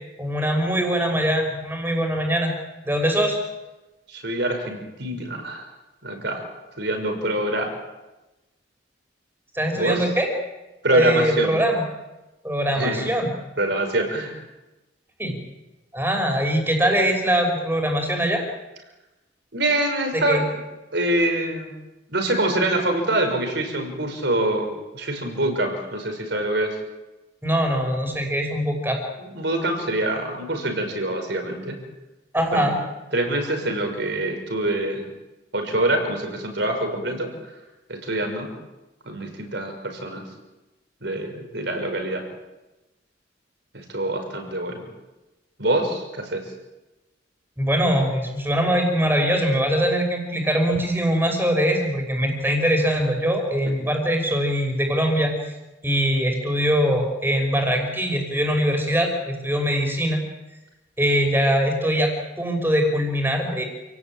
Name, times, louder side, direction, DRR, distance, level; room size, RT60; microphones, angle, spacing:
voice 1, 0.2-2.5 2.8-3.4 9.5-10.3 10.9-11.8 12.4-13.3 15.2-15.3 15.9-18.4 20.3-20.4 27.4-29.0 32.3-32.8 47.6-55.5 55.8-60.2 61.0-63.6, equal, 10° right, 3 dB, 5.8 m, -22 dB
voice 2, 4.1-5.7 6.0-6.5 6.8-7.7 9.7-10.0 10.8-11.6 12.7-13.1 13.6-14.4 19.5-20.6 20.9-21.7 22.1-26.8 29.2-31.8 32.5-32.7 33.1-35.1 35.5-37.3 37.9-38.5 39.1-40.2 41.0-42.3 43.7-44.8 45.6-46.5, right 1 dB, 60° right, 5 dB, 6.0 m, -25 dB
29.5 x 18.5 x 9.0 m, 1.1 s
head